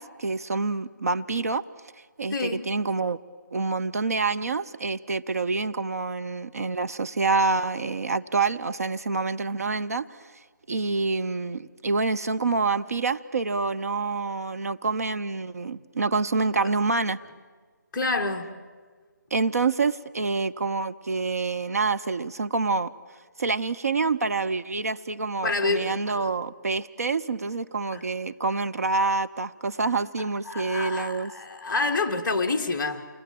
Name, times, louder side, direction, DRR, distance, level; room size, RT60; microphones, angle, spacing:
voice 1, 0.0-1.6 2.2-3.2 3.5-10.2 10.7-17.2 19.3-22.9 23.4-31.3, right 4 dB, 50° right, 0.7 m, -27 dB
voice 2, 2.3-2.7 17.9-18.5 25.4-26.3 27.9-28.0 30.4-33.0, left 3 dB, 10° left, 1.4 m, -28 dB
28.5 x 21.5 x 7.7 m
figure-of-eight pair, 165°, 10 cm